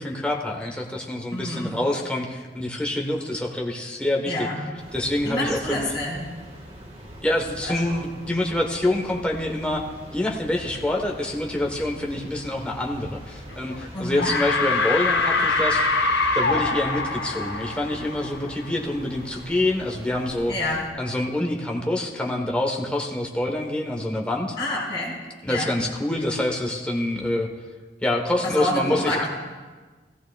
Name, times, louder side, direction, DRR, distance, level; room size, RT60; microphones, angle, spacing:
voice 1, 0.0-4.3 4.9-5.9 7.2-9.8 10.1-16.0 16.3-20.5 21.0-24.6 25.4-27.5 28.0-29.3, left 1 dB, 5° left, -1 dB, 1.0 m, -26 dB
voice 2, 1.3-1.8 4.3-4.7 5.2-6.2 7.7-8.0 13.9-14.3 20.5-20.8 24.6-25.2 25.5-25.7 28.4-29.3, left 1 dB, 25° left, -8 dB, 3.8 m, -28 dB
sound 1, 4.8-20.9, equal, 30° right, 1.4 m, -43 dB
sound 2, 13.5-13.9 14.2-18.8, left 3 dB, 65° left, 0.9 m, -24 dB
15.0 x 14.5 x 2.3 m, 1.4 s
head